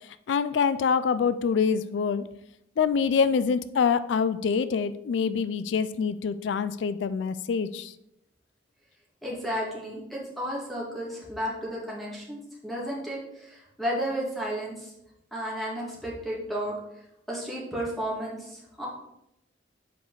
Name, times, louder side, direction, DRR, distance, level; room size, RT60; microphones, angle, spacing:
voice 1, 0.3-2.2 2.8-7.9, left 6 dB, 85° left, 14 dB, 0.4 m, -25 dB
voice 2, 9.2-14.9 15.3-16.8 17.3-18.9, equal, ahead, -5 dB, 2.1 m, -33 dB
7.7 x 5.0 x 4.8 m, 0.83 s
head